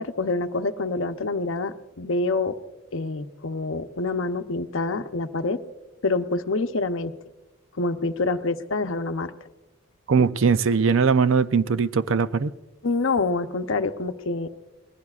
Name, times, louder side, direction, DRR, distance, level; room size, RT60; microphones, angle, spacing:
voice 1, 0.0-2.6 2.9-5.6 6.0-7.1 7.8-9.3 10.2-10.3 12.8-14.5, left 3 dB, 70° left, 8 dB, 0.8 m, -26 dB
voice 2, 10.1-12.5, right 5 dB, 65° right, 13 dB, 0.5 m, -20 dB
26.5 x 20.5 x 2.4 m, 1.1 s
head